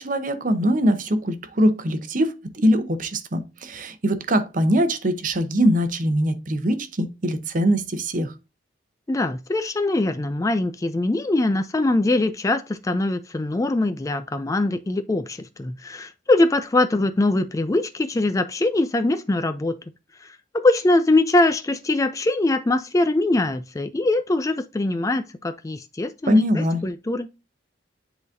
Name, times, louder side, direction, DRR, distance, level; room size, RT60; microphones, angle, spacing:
voice 1, 0.0-8.3 26.3-26.9, equal, 45° right, 0.8 m, -22 dB
voice 2, 9.1-19.8 20.2-27.3, left 2 dB, 15° left, 0.3 m, -22 dB
9.8 x 4.0 x 2.6 m
head